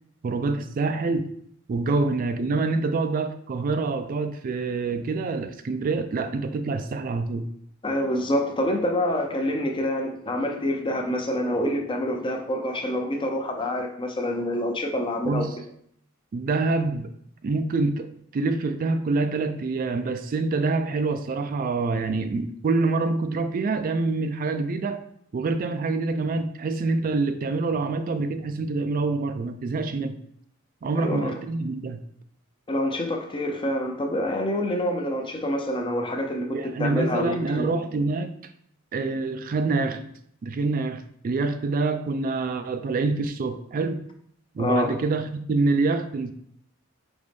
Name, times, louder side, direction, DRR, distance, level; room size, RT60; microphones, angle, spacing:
voice 1, 0.2-1.3 1.7-7.5 15.2-15.6 16.3-17.1 17.4-25.0 25.3-30.2 30.8-32.0 36.5-38.3 38.9-40.1 40.4-44.0 44.5-46.3, right 3 dB, 45° right, 9 dB, 0.3 m, -26 dB
voice 2, 7.8-15.5 31.0-31.3 32.7-37.7 44.6-44.9, left 1 dB, 25° left, 3 dB, 0.6 m, -27 dB
5.2 x 3.0 x 3.4 m, 0.67 s
head